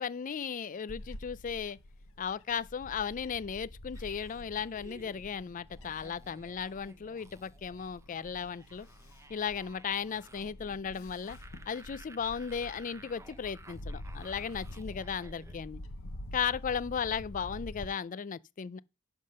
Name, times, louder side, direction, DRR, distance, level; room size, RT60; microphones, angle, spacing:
voice 1, 0.0-1.8 2.2-8.9 9.3-11.4 11.7-15.8 16.3-18.8, left 7 dB, 40° left, 0.4 m, -36 dB
Bird / Wind, 0.9-17.9, left 1 dB, 75° left, 0.9 m, -47 dB
sound 1, 3.9-15.6, right 2 dB, 15° right, 0.6 m, -56 dB
10.5 x 3.7 x 6.5 m
head